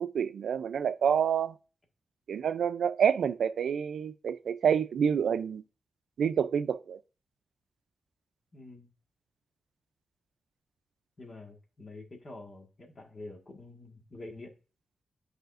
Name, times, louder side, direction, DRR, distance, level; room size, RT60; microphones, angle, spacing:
voice 1, 0.0-1.6 2.3-5.6 6.2-7.0, right 7 dB, 85° right, 0.4 m, -28 dB
voice 2, 8.5-8.9 11.2-14.5, left 2 dB, 40° left, 1.6 m, -47 dB
9.2 x 4.9 x 2.5 m
wide cardioid pair, 115°, 0 cm